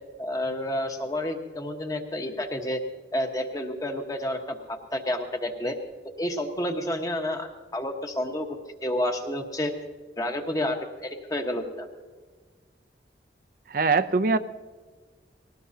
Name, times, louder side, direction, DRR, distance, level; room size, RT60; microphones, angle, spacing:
voice 1, 0.2-2.8 3.1-5.8 6.2-9.7 10.2-11.9, left 1 dB, 20° left, 4 dB, 1.2 m, -30 dB
voice 2, 13.7-14.4, right 4 dB, 50° right, 11 dB, 0.6 m, -22 dB
20.0 x 18.0 x 2.8 m, 1.4 s
head